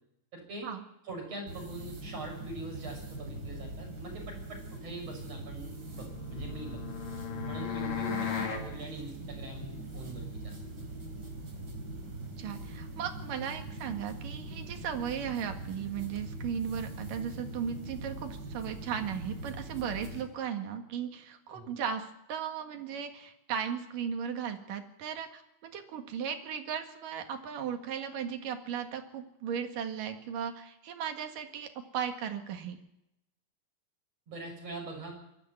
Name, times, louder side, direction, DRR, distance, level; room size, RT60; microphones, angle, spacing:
voice 1, 0.3-0.7 1.0-6.8 7.5-10.9 21.5-21.7 34.3-35.2, right 2 dB, 50° right, 1 dB, 7.4 m, -43 dB
sound 1, 1.5-20.2, right 2 dB, 30° right, 4.0 m, -42 dB
sound 2, 6.1-8.7, left 9 dB, 85° left, 4.2 m, -36 dB
voice 2, 8.1-8.5 12.4-32.8, right 8 dB, 90° right, 6 dB, 3.5 m, -36 dB
22.5 x 13.0 x 9.6 m, 0.84 s
omnidirectional pair, 3.7 m